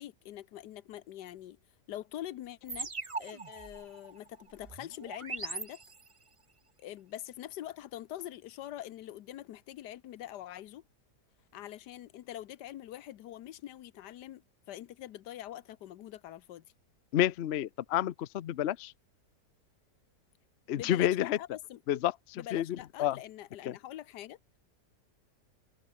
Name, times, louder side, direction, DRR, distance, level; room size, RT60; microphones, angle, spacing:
voice 1, 0.0-1.6 1.9-2.9 3.2-5.8 6.8-10.8 11.5-16.6 20.7-21.8 22.3-24.4, left 13 dB, 85° left, 1.4 m, -44 dB
sound 1, 2.7-6.3, right 4 dB, 25° right, 0.7 m, -41 dB
voice 2, 17.1-18.9 20.7-21.4 21.9-23.2 23.7-23.8, left 12 dB, 60° left, 0.7 m, -30 dB
omnidirectional pair, 1.8 m